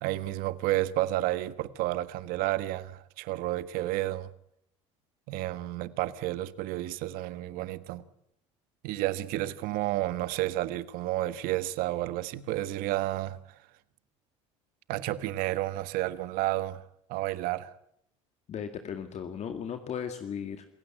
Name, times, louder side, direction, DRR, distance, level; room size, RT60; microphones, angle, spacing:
voice 1, 0.0-4.3 5.3-8.0 8.8-13.4 14.9-16.8 17.1-17.7, right 16 dB, 65° right, 1.4 m, -31 dB
voice 2, 18.5-20.7, left 7 dB, 45° left, 2.2 m, -36 dB
27.5 x 16.0 x 8.9 m
hypercardioid pair, 80°, 16 cm